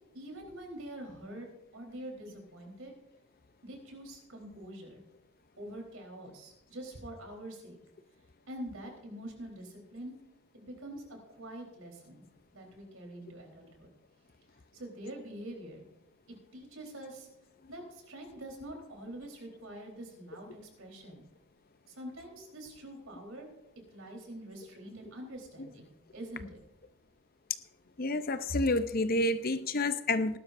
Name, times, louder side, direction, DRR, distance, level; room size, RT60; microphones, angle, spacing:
voice 1, 0.1-1.5 1.7-2.9 3.6-5.0 5.6-7.8 8.5-10.1 10.5-11.0 11.3-12.2 12.5-13.9 14.7-15.9 16.5-17.3 17.7-21.2 21.9-23.5 23.9-26.6, right 1 dB, 70° right, 2 dB, 3.9 m, -45 dB
voice 2, 28.0-30.4, left 2 dB, 40° left, 11 dB, 0.6 m, -29 dB
19.5 x 12.0 x 2.6 m, 0.94 s
head